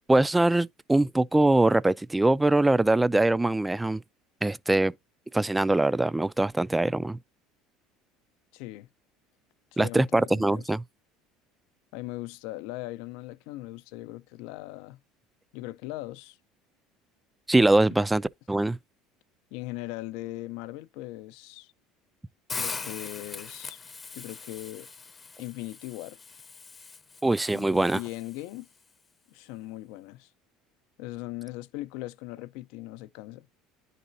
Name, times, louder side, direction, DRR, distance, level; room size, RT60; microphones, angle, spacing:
voice 1, 0.1-4.0 4.4-4.9 5.3-7.2 9.8-10.8 17.5-18.8 27.2-28.0, right 2 dB, 10° right, 0.3 m, -23 dB
voice 2, 8.5-8.9 9.7-10.6 11.9-15.0 15.5-16.4 19.5-21.7 22.5-23.8 24.1-24.9 25.4-26.2 27.5-28.7 29.3-30.3 31.0-33.5, left 17 dB, 75° left, 0.4 m, -39 dB
Hiss, 22.5-28.6, left 4 dB, 25° left, 0.6 m, -41 dB
10.0 x 4.1 x 2.6 m
supercardioid pair, 105°, 0 cm